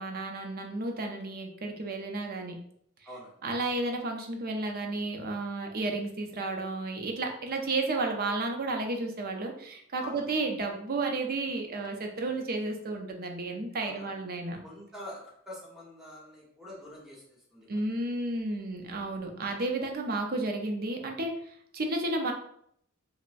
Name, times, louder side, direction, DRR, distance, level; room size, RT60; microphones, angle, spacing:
voice 1, 0.0-2.5 3.4-14.6 17.7-22.3, right 2 dB, 45° right, 3 dB, 0.6 m, -32 dB
voice 2, 3.0-3.4 10.0-10.3 13.8-14.2 14.6-17.9 18.7-19.2, left 1 dB, ahead, -4 dB, 1.0 m, -46 dB
5.4 x 2.1 x 2.5 m, 0.68 s
head